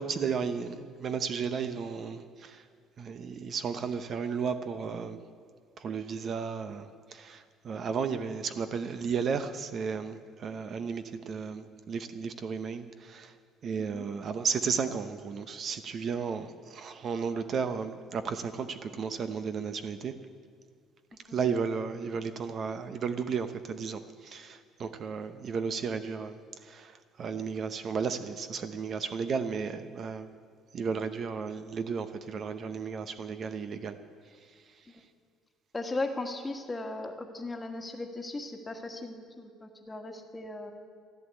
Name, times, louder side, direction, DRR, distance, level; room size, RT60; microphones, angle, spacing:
voice 1, 0.0-2.6 3.0-5.2 5.8-13.3 13.6-20.1 21.3-30.3 30.7-34.0, right 6 dB, 45° right, 10 dB, 0.8 m, -34 dB
voice 2, 35.7-40.7, left 2 dB, 15° left, 4 dB, 1.5 m, -37 dB
14.5 x 11.0 x 8.2 m, 2.1 s
cardioid pair, 125°, 0 cm